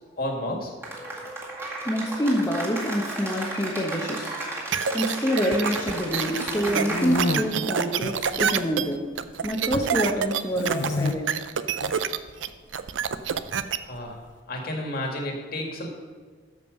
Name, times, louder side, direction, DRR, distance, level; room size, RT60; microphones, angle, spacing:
voice 1, 0.2-0.7 13.8-14.2 14.5-15.9, left 1 dB, 50° left, 1 dB, 1.9 m, -31 dB
Cheering / Applause, 0.8-7.5, right 2 dB, 15° right, 1.9 m, -34 dB
voice 2, 1.8-4.4 4.9-9.1 9.4-11.3, equal, 15° left, -2 dB, 0.9 m, -26 dB
sound 1, 4.7-13.8, right 7 dB, 75° right, 0.5 m, -27 dB
sound 2, 6.0-7.4 8.1-8.7 9.0-9.9 10.5-11.1 11.7-11.9 13.1-14.0, left 2 dB, 70° left, 0.7 m, -30 dB
13.0 x 5.3 x 5.3 m, 1.5 s
head